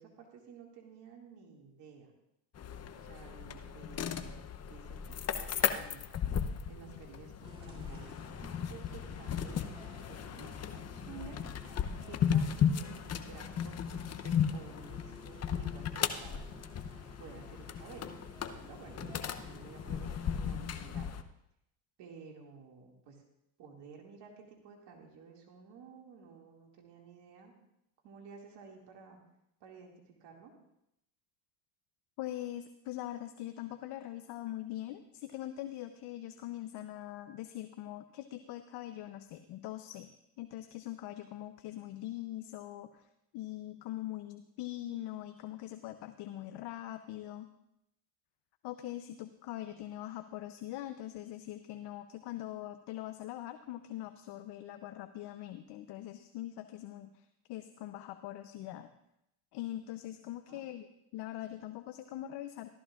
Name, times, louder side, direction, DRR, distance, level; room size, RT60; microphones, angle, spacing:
voice 1, 0.0-2.1 3.0-4.4 4.7-6.1 6.7-8.1 8.4-9.6 10.1-11.6 12.0-16.4 17.2-18.1 18.5-21.1 22.0-23.2 23.6-27.5 28.0-29.2 29.6-30.5 60.5-60.6, right 5 dB, 65° right, 1 dB, 2.4 m, -53 dB
sound 1, 2.5-21.2, left 8 dB, 35° left, 0.8 m, -36 dB
sound 2, 7.4-20.6, equal, 10° right, 3.1 m, -54 dB
voice 2, 32.2-40.1 40.4-43.1 43.3-47.5 48.6-58.9 59.5-62.7, left 14 dB, 60° left, 9 dB, 0.8 m, -42 dB
15.0 x 13.0 x 2.5 m, 0.80 s
supercardioid pair, 80°, 45 cm